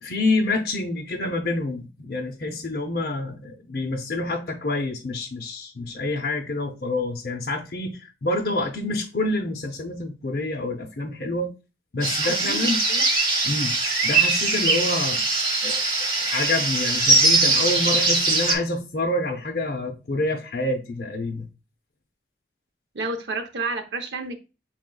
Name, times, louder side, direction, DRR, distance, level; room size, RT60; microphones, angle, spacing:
voice 1, 0.0-11.5 11.9-12.8 13.4-13.7 14.0-15.2 15.6-21.5, left 2 dB, 55° left, 0.6 m, -27 dB
sound 1, 12.0-18.5, right 3 dB, 25° right, 1.1 m, -21 dB
voice 2, 12.2-13.1 22.9-24.4, right 3 dB, 75° right, 0.8 m, -31 dB
6.4 x 3.7 x 2.2 m
head